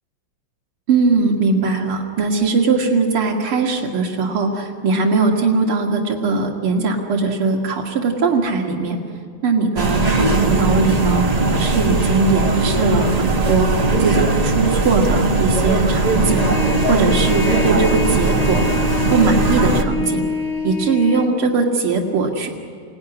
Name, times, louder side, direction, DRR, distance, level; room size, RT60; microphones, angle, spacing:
voice 1, 0.9-9.0 9.4-13.7 14.0-16.5 16.9-18.7 19.1-20.2 20.6-22.5, right 4 dB, 85° right, 1 dB, 3.0 m, -20 dB
sound 1, 9.8-19.8, right 2 dB, 25° right, 1.1 m, -19 dB
Trumpet, 16.3-21.3, left 3 dB, 30° left, 3.2 m, -26 dB
29.0 x 18.5 x 9.9 m, 2.1 s
omnidirectional pair, 2.3 m